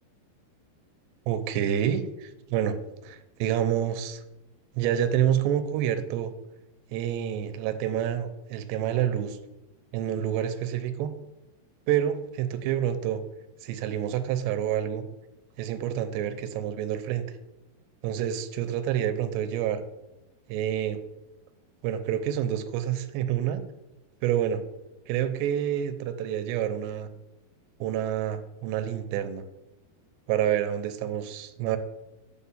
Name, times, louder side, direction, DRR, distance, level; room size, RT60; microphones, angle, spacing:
voice 1, 1.3-2.8 3.0-4.2 4.8-6.3 6.9-9.4 9.9-11.1 11.9-13.2 13.6-15.0 15.6-17.3 18.0-19.8 20.5-21.0 21.8-23.6 24.2-24.6 25.1-27.1 27.8-29.4 30.3-31.8, right 10 dB, 90° right, 10 dB, 2.8 m, -28 dB
9.3 x 4.3 x 7.2 m, 0.97 s
omnidirectional pair, 4.9 m